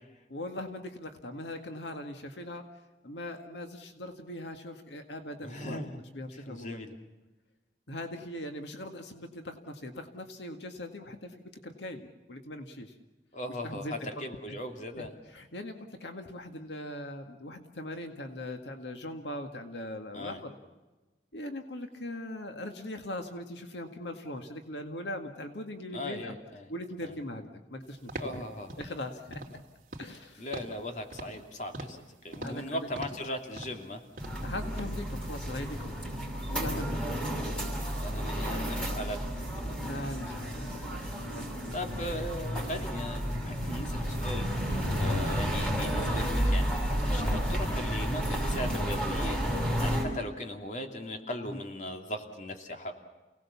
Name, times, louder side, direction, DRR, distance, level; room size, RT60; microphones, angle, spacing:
voice 1, 0.3-2.6 3.0-5.8 6.1-6.8 7.9-13.0 13.6-14.0 14.5-14.6 15.0-15.7 16.0-20.5 21.3-26.3 26.7-28.4 28.8-29.4 30.0-30.5 32.4-32.9 34.4-35.9 36.5-37.0 39.8-41.8 44.9-45.2 47.2-47.5 49.9-50.1 51.4-51.6, left 1 dB, 80° left, 5 dB, 1.9 m, -40 dB
voice 2, 5.4-6.0 6.5-7.0 13.3-15.1 20.1-20.4 25.9-26.7 27.0-27.1 28.2-28.8 30.4-34.0 38.0-39.2 39.6-39.8 41.7-46.8 47.1-52.9, left 1 dB, 45° left, 4 dB, 2.8 m, -38 dB
sound 1, 28.1-28.4 28.7-29.0 29.3-29.6 29.9-30.2 30.5-30.8 31.1-31.4 31.7-32.0 32.3-32.6 33.0-33.3 33.6-33.9 34.2-34.5 34.8-34.9, right 1 dB, 50° right, 3.2 m, -42 dB
sound 2, 34.2-50.0, equal, 5° left, 5.9 m, -31 dB
29.0 x 18.5 x 7.2 m, 1.2 s
head